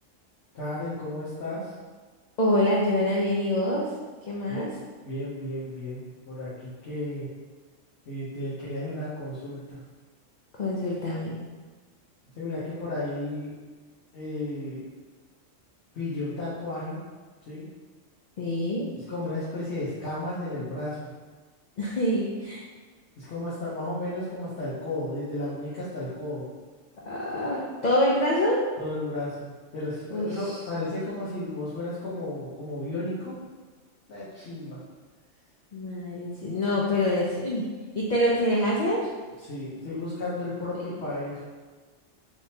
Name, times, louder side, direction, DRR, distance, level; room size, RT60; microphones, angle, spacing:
voice 1, 0.5-1.7 4.5-4.7 5.0-7.3 8.1-9.8 12.4-13.5 14.1-14.8 15.9-17.0 17.5-17.7 19.1-21.1 23.2-26.5 28.8-33.4 34.1-34.8 39.5-41.4, left 1 dB, 60° left, -9 dB, 1.0 m, -33 dB
voice 2, 2.4-3.9 4.3-4.7 10.6-11.4 18.4-18.9 21.8-22.6 27.1-28.6 30.1-30.6 35.7-37.7 37.9-39.1, left 1 dB, 85° left, -5 dB, 0.3 m, -25 dB
3.5 x 2.8 x 2.7 m, 1.4 s
omnidirectional pair, 1.4 m